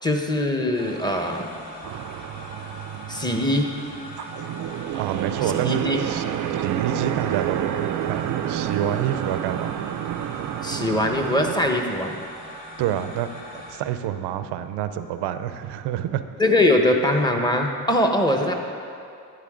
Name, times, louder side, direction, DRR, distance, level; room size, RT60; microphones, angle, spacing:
voice 1, 0.0-1.5 3.1-3.7 5.6-6.0 10.6-12.2 16.4-18.5, left 1 dB, 10° left, 3 dB, 1.1 m, -22 dB
sound 1, 0.7-13.8, equal, 60° left, 2.5 m, -41 dB
sound 2, 1.8-11.8, right 11 dB, 50° right, 0.5 m, -29 dB
voice 2, 5.0-6.2 6.5-9.7 12.8-13.3 13.7-16.2, right 11 dB, 90° right, 10 dB, 0.6 m, -27 dB
12.0 x 8.8 x 3.8 m, 2.4 s
cardioid pair, 85°, 39 cm